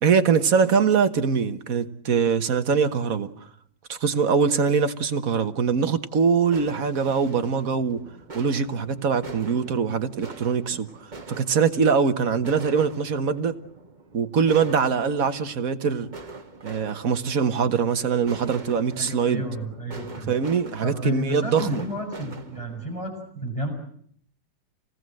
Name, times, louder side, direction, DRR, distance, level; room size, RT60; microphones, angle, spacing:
voice 1, 0.0-3.3 3.9-8.0 8.3-10.9 11.3-13.6 14.1-16.1 16.6-19.4 20.3-21.8, right 6 dB, 60° right, 1.7 m, -23 dB
sound 1, 6.4-23.1, right 3 dB, 30° right, 1.5 m, -43 dB
voice 2, 19.0-20.3 20.8-23.1 23.4-23.7, equal, 20° left, 6.8 m, -31 dB
28.0 x 19.0 x 7.7 m
omnidirectional pair, 1.7 m